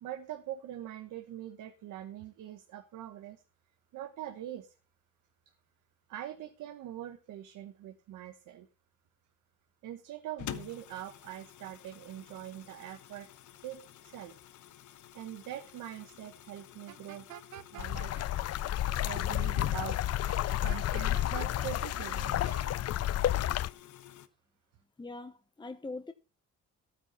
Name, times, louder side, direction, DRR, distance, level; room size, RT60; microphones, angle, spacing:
voice 1, 0.0-3.4 3.9-4.7 6.1-8.7 9.8-13.3 13.6-14.3 15.1-17.3 17.7-18.3 18.9-20.3 20.6-22.3, right 12 dB, 85° right, 1.3 m, -43 dB
sound 1, 10.4-24.3, left 12 dB, 75° left, 1.2 m, -51 dB
sound 2, 16.9-18.3 20.3-21.7 22.0-22.8, right 11 dB, 70° right, 0.9 m, -49 dB
sound 3, 17.8-23.7, left 13 dB, 55° left, 0.5 m, -31 dB
voice 2, 25.0-26.1, left 3 dB, 15° left, 0.9 m, -42 dB
12.5 x 9.2 x 5.5 m
cardioid pair, 90°, 30 cm